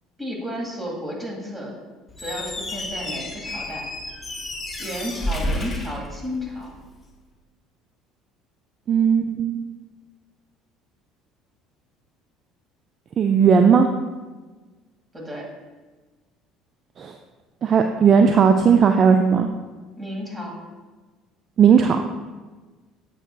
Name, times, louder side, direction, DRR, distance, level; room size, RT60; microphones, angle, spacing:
voice 1, 0.2-1.7 2.2-3.8 4.8-6.7 15.1-15.5 20.0-20.5, equal, 20° right, -2 dB, 2.0 m, -32 dB
Squeak, 2.1-6.8, left 1 dB, 25° left, 1.0 m, -31 dB
voice 2, 8.9-9.6 13.2-13.9 17.0-17.1 17.6-19.5 21.6-22.0, right 6 dB, 40° right, 5 dB, 0.3 m, -16 dB
7.8 x 5.8 x 2.2 m, 1.3 s
figure-of-eight pair, 60°, 0 cm